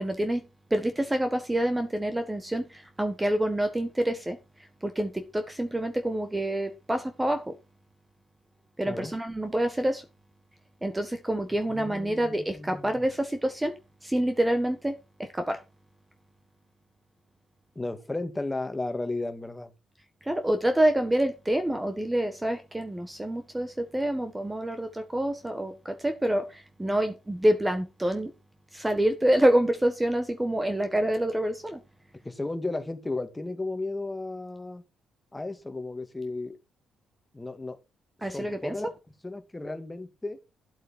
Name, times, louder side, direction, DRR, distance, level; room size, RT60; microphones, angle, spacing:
voice 1, 0.0-4.4 4.8-7.6 8.8-10.0 10.8-15.6 20.2-28.3 28.7-31.8 38.2-38.9, right 1 dB, 10° right, 1.5 m, -27 dB
voice 2, 11.7-13.0 17.8-19.7 32.2-34.8 35.3-36.6 37.3-37.8 38.3-38.9 39.2-40.4, left 2 dB, 15° left, 2.1 m, -34 dB
12.0 x 7.9 x 4.6 m
cardioid pair, 90°, 0 cm